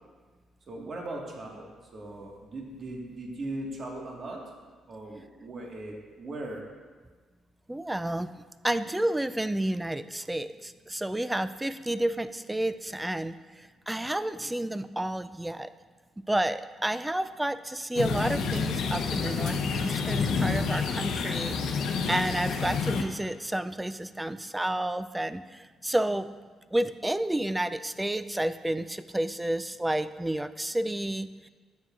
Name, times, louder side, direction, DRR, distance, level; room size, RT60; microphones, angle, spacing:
voice 1, 0.7-4.4 4.9-6.6, right 2 dB, 45° right, -1 dB, 1.6 m, -39 dB
voice 2, 7.7-8.3 8.6-15.7 16.3-26.3 26.7-31.5, right 1 dB, 10° right, 13 dB, 0.3 m, -30 dB
sound 1, 18.0-23.0, left 5 dB, 80° left, 0.8 m, -29 dB
12.5 x 7.9 x 2.5 m, 1.4 s
cardioid pair, 90°, 0 cm